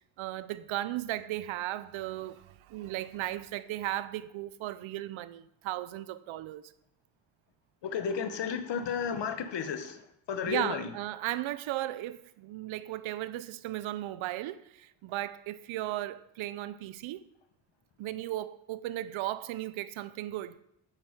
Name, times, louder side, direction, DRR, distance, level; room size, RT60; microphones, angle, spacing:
voice 1, 0.2-6.7 10.5-17.2 18.0-20.6, right 15 dB, 85° right, 0.6 m, -36 dB
voice 2, 7.8-10.9, left 6 dB, 65° left, 1.2 m, -33 dB
8.6 x 6.1 x 5.1 m
supercardioid pair, 65°, 47 cm